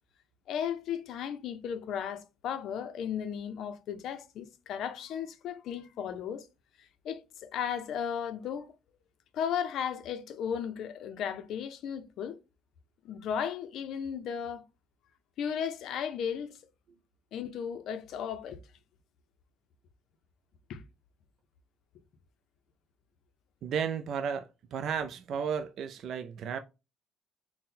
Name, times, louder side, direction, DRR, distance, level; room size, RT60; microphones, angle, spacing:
voice 1, 0.5-6.5 6.8-8.7 9.3-12.4 13.0-14.6 15.4-16.6 17.3-18.6 20.7-20.8, left 8 dB, 65° left, 0.5 m, -35 dB
voice 2, 23.6-26.6, right 7 dB, 55° right, 0.3 m, -33 dB
4.2 x 2.1 x 3.7 m
cardioid pair, 135°, 0 cm